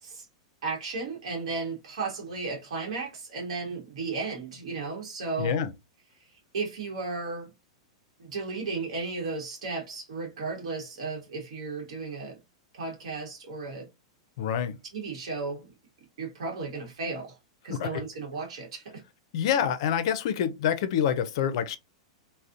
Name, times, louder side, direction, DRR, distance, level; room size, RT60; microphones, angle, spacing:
voice 1, 0.6-5.6 6.5-7.5 8.2-12.4 12.7-13.8 14.9-15.7 16.2-17.3 17.6-18.8, right 4 dB, 85° right, 0.9 m, -34 dB
voice 2, 5.4-5.7 14.4-14.8 17.7-18.0 19.3-21.8, left 8 dB, 60° left, 0.4 m, -27 dB
2.5 x 2.0 x 2.4 m
supercardioid pair, 145°, 3 cm